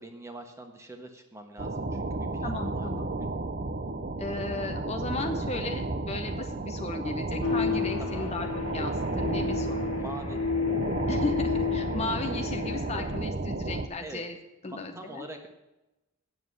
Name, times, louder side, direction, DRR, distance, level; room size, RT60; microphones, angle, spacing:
voice 1, 0.0-3.1 8.0-8.3 10.0-10.4 14.0-14.2 14.6-15.5, right 1 dB, 15° right, 4 dB, 1.4 m, -44 dB
sound 1, 1.6-13.9, right 2 dB, 40° right, 0.7 m, -32 dB
voice 2, 2.4-3.1 4.2-9.9 11.1-14.4 14.6-15.2, left 2 dB, 30° left, 5 dB, 0.8 m, -35 dB
sound 2, 7.4-13.2, left 6 dB, 90° left, 1.1 m, -32 dB
9.5 x 7.2 x 8.4 m, 0.98 s
head